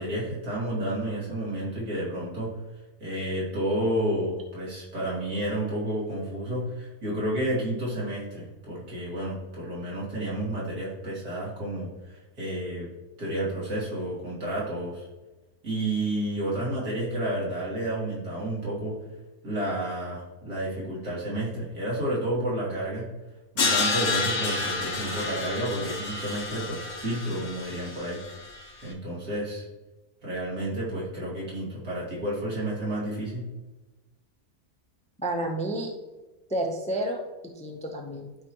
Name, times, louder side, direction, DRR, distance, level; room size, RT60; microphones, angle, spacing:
voice 1, 0.0-2.5 3.0-12.9 13.2-15.0 15.6-18.9 19.4-23.1 23.5-28.2 28.8-29.6 30.2-33.5, right 1 dB, 85° right, -7 dB, 3.3 m, -31 dB
Crash cymbal, 23.6-28.6, left 4 dB, 80° left, 1.7 m, -30 dB
voice 2, 35.2-35.9 36.5-37.2 37.6-38.3, right 1 dB, 10° left, 2 dB, 0.5 m, -30 dB
12.0 x 4.9 x 3.0 m, 1.1 s
omnidirectional pair, 1.6 m